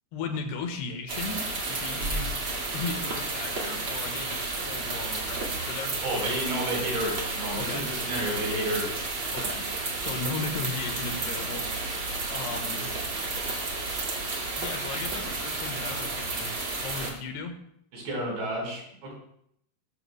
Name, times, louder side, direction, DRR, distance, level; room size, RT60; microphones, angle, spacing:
voice 1, 0.1-2.3 2.7-6.0 7.5-7.9 9.3-9.6 10.0-11.6 12.3-12.9 14.6-16.5 16.8-17.5, left 4 dB, 75° left, 5 dB, 3.2 m, -36 dB
sound 1, 1.1-17.1, right 3 dB, 40° right, 2.2 m, -32 dB
voice 2, 6.0-9.0 17.9-19.1, right 1 dB, 75° right, -1 dB, 7.0 m, -31 dB
19.5 x 13.0 x 2.3 m, 0.69 s
omnidirectional pair, 5.1 m